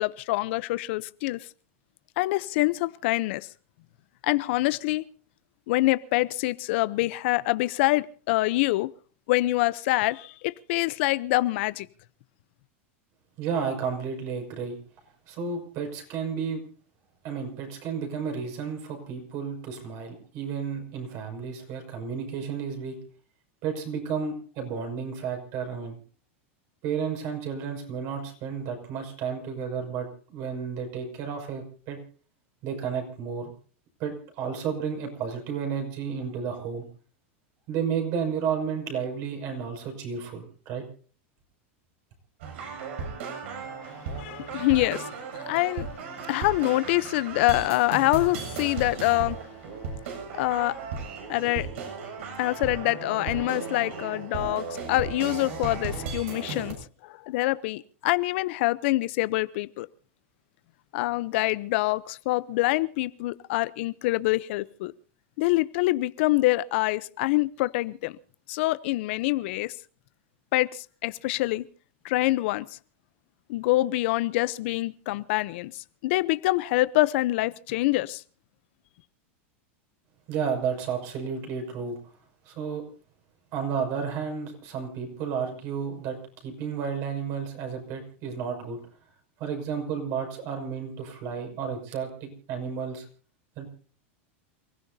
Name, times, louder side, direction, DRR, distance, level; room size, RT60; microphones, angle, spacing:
voice 1, 0.0-1.5 2.2-3.5 4.2-5.0 5.7-8.9 9.3-11.9 44.2-45.1 45.3-45.9 46.2-49.4 50.4-50.8 51.3-51.7 52.4-56.8 57.0-59.9 60.9-64.9 65.4-68.2 68.5-69.7 70.5-71.7 72.0-72.7 73.5-78.2, left 19 dB, 60° left, 0.7 m, -25 dB
voice 2, 13.4-14.8 15.3-16.6 17.2-23.0 23.6-26.0 26.8-32.0 32.6-33.5 34.0-36.8 37.7-40.8 80.3-82.0 82.5-82.8 83.5-88.8 89.4-93.0 93.6-93.7, right 6 dB, 50° right, 6.2 m, -32 dB
sound 1, 42.4-56.7, right 5 dB, 70° right, 7.4 m, -36 dB
29.0 x 16.0 x 2.8 m
supercardioid pair, 135°, 7 cm